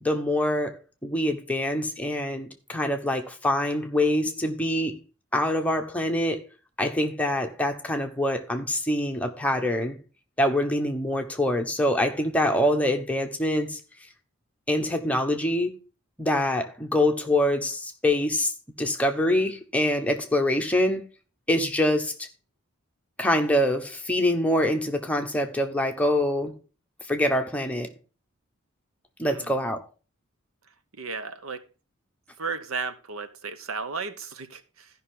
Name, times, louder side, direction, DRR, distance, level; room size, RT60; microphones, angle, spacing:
voice 1, 0.0-5.0 5.3-6.4 6.8-10.0 10.4-13.8 14.7-15.7 16.2-18.5 18.8-21.0 21.5-22.3 23.2-26.5 27.1-27.9 29.2-29.8, left 1 dB, 5° left, 1.0 m, -25 dB
voice 2, 31.0-31.6 32.4-34.9, right 4 dB, 80° right, 0.9 m, -34 dB
14.5 x 5.6 x 3.7 m
head